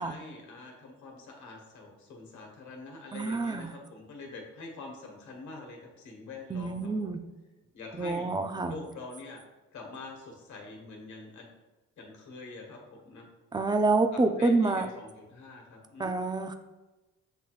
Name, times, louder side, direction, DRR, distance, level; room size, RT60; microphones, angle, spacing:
voice 1, 0.0-7.1 7.7-8.3 8.6-9.4 9.7-11.5 12.0-13.3 14.1-16.1, left 3 dB, 70° left, 1 dB, 1.3 m, -45 dB
voice 2, 3.1-3.7 6.5-7.2 8.0-8.7 13.5-14.9 16.0-16.6, right 3 dB, 15° right, 7 dB, 0.4 m, -27 dB
7.6 x 2.9 x 2.4 m, 1.1 s
cardioid pair, 90°, 30 cm